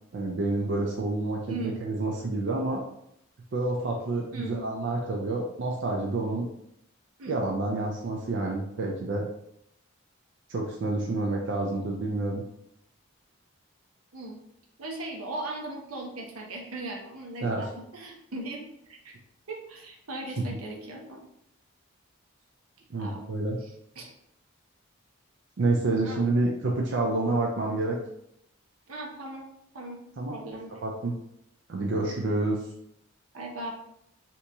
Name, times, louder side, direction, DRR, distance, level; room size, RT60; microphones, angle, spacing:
voice 1, 0.1-2.8 3.5-6.5 7.3-9.3 10.5-12.4 17.4-17.7 22.9-23.6 25.6-28.0 30.2-30.4 30.8-31.2 31.7-32.6, right 2 dB, 55° right, -1 dB, 0.4 m, -28 dB
voice 2, 1.5-1.8 4.3-4.6 7.2-7.4 14.1-14.4 14.8-18.6 18.9-19.1 19.5-21.2 23.0-23.3 23.6-24.1 26.0-26.2 28.9-29.5 29.7-30.0 30.3-30.7 33.3-33.7, right 1 dB, 85° right, 0 dB, 0.8 m, -38 dB
3.4 x 2.9 x 2.6 m, 0.77 s
head